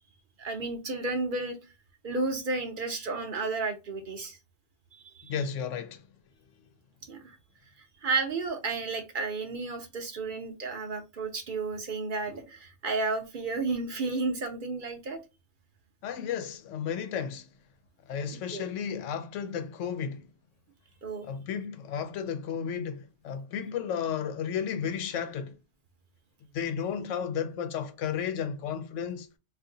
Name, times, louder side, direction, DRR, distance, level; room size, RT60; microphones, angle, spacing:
voice 1, 0.4-1.6 2.0-4.4 5.1-5.3 7.1-7.4 8.0-15.2 18.5-18.7 21.0-21.3, right 3 dB, 55° right, 0.7 m, -32 dB
voice 2, 5.2-6.0 16.0-17.5 18.1-20.3 21.2-25.6 26.5-29.3, left 7 dB, 90° left, 0.9 m, -33 dB
2.7 x 2.5 x 3.7 m
omnidirectional pair, 1.2 m